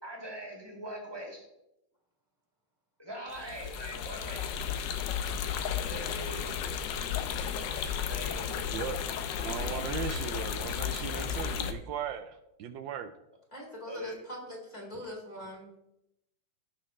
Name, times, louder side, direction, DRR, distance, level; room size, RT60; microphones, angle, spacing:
voice 1, 0.0-1.5 3.0-4.5 5.8-6.6 8.1-8.8 13.9-14.2, equal, 10° right, -1 dB, 2.0 m, -42 dB
sound 1, 3.3-11.7, left 8 dB, 70° left, 1.3 m, -34 dB
voice 2, 8.7-9.0 9.4-13.1, right 8 dB, 75° right, 8 dB, 1.3 m, -38 dB
voice 3, 13.5-15.8, equal, 20° left, -2 dB, 2.4 m, -42 dB
16.0 x 6.1 x 3.1 m, 0.87 s
omnidirectional pair, 2.1 m